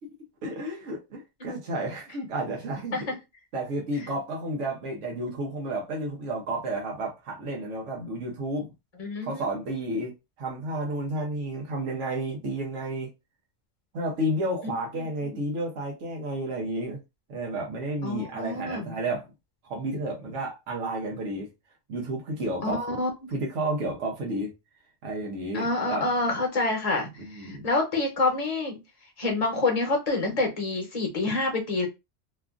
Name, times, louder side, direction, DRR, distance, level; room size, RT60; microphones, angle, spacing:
voice 1, 0.4-3.1 3.5-8.7 9.2-13.1 13.9-17.0 17.3-19.3 19.6-21.5 21.9-22.8 23.3-24.5 25.0-26.1 27.2-27.6, right 1 dB, 75° right, 1.1 m, -31 dB
voice 2, 9.0-9.5 14.6-15.3 18.0-18.9 22.6-23.1 25.5-28.8 29.2-31.9, left 2 dB, 35° left, 0.9 m, -27 dB
2.9 x 2.4 x 2.4 m
omnidirectional pair, 1.3 m